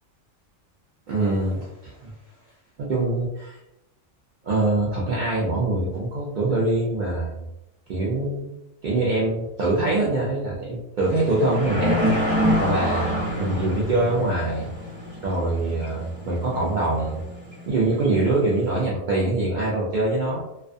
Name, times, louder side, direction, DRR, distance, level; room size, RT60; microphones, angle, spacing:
voice 1, 1.1-2.1 2.8-3.6 4.4-7.5 7.9-8.5 8.8-12.1 12.6-14.7 15.2-17.2 17.7-20.4, right 2 dB, 70° right, -5 dB, 0.4 m, -24 dB
sound 1, 11.0-18.8, left 1 dB, 25° right, 0.8 m, -27 dB
2.3 x 2.2 x 2.5 m, 0.89 s
omnidirectional pair, 1.3 m